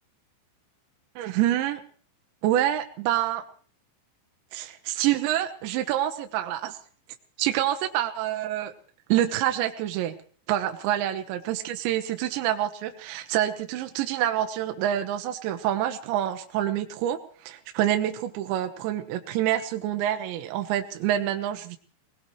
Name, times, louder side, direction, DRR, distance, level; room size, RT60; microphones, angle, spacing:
voice 1, 1.2-1.8 2.4-3.5 4.5-6.8 7.4-8.7 9.1-10.2 10.5-21.8, right 12 dB, 75° right, 5 dB, 2.9 m, -27 dB
23.5 x 19.0 x 3.1 m, 0.44 s
omnidirectional pair, 5.8 m